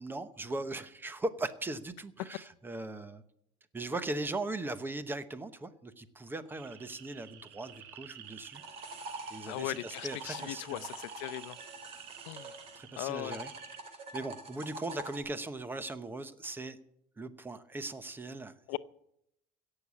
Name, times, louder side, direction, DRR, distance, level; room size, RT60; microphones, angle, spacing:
voice 1, 0.0-3.2 3.7-8.6 9.3-10.9 12.4-13.5 14.1-16.8 17.2-18.8, right 2 dB, 15° right, 0.9 m, -39 dB
sound 1, 6.5-13.8, right 10 dB, 70° right, 1.7 m, -52 dB
sound 2, 8.2-12.8 13.2-15.2, right 2 dB, 40° right, 2.9 m, -45 dB
voice 2, 9.5-11.6 12.3-12.5 13.0-13.4 18.7-18.8, left 19 dB, 85° left, 0.6 m, -38 dB
17.0 x 6.7 x 8.5 m
cardioid pair, 145°, 16 cm